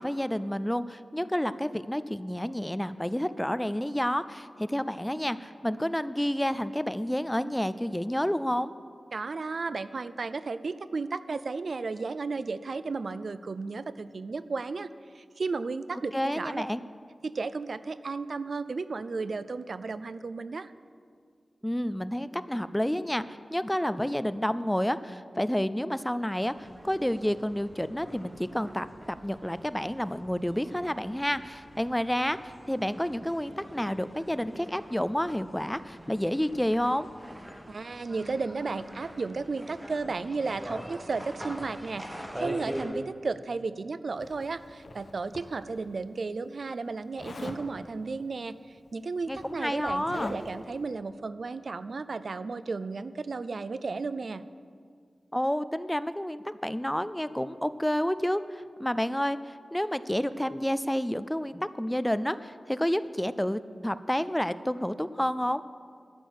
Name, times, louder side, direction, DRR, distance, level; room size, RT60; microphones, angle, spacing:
voice 1, 0.0-8.7 16.1-16.8 21.6-28.9 29.2-37.1 49.3-50.4 55.3-65.6, equal, 5° left, 14 dB, 0.3 m, -30 dB
voice 2, 9.1-16.6 17.2-20.7 37.7-54.4, right 4 dB, 65° right, 14 dB, 0.4 m, -34 dB
sound 1, 26.4-42.8, equal, 10° right, 1.5 m, -44 dB
Zipper (clothing), 44.2-45.8 47.2-47.6 48.8-48.9 49.2-50.7, left 2 dB, 65° left, 1.1 m, -42 dB
13.0 x 6.2 x 8.0 m, 2.1 s
wide cardioid pair, 110°, 0 cm